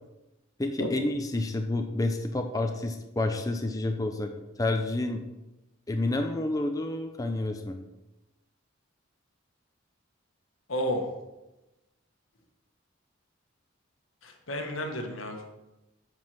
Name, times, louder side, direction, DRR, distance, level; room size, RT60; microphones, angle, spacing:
voice 1, 0.6-4.3 4.6-5.2 5.9-7.8, left 2 dB, 20° left, 4 dB, 0.5 m, -29 dB
voice 2, 10.7-11.1 14.2-15.4, left 1 dB, 80° left, 4 dB, 1.4 m, -31 dB
7.8 x 5.5 x 5.9 m, 1.0 s
head